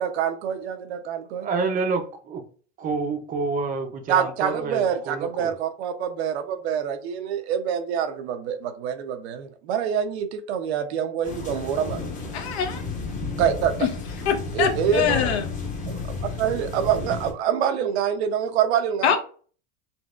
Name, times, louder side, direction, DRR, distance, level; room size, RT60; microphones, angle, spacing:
voice 1, 0.0-1.5 4.1-12.0 13.4-13.7 14.5-15.3 15.9-16.0 16.4-19.2, right 8 dB, 85° right, 0.7 m, -26 dB
voice 2, 1.4-2.4 2.8-5.5, right 4 dB, 25° right, 0.5 m, -28 dB
sound 1, 11.2-17.3, left 3 dB, 25° left, 0.8 m, -32 dB
voice 3, 12.3-12.8 13.8-13.9 14.3-15.5 19.0-19.2, left 8 dB, 85° left, 0.8 m, -23 dB
4.1 x 2.2 x 2.3 m
supercardioid pair, 145°, 32 cm